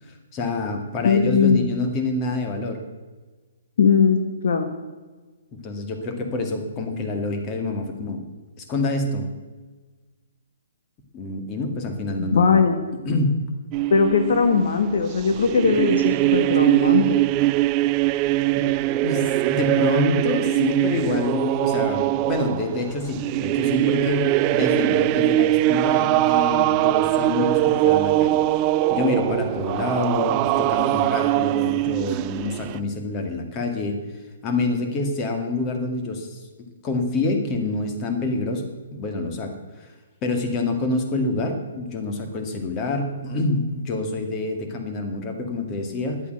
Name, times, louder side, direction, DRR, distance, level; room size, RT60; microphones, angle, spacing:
voice 1, 0.3-2.8 5.6-8.2 8.6-9.2 11.1-12.6 13.0-13.4 18.5-18.7 19.0-28.4 28.9-34.0 34.4-36.4 36.8-38.6 38.9-39.9 40.2-46.2, left 2 dB, 30° left, 5 dB, 2.2 m, -26 dB
voice 2, 1.0-1.6 3.8-4.7 12.3-12.8 13.9-17.2, left 5 dB, 65° left, 6 dB, 1.4 m, -19 dB
sound 1, 13.7-32.8, right 16 dB, 30° right, 0.3 m, -22 dB
11.5 x 8.4 x 7.9 m, 1.3 s
hypercardioid pair, 140°, 0 cm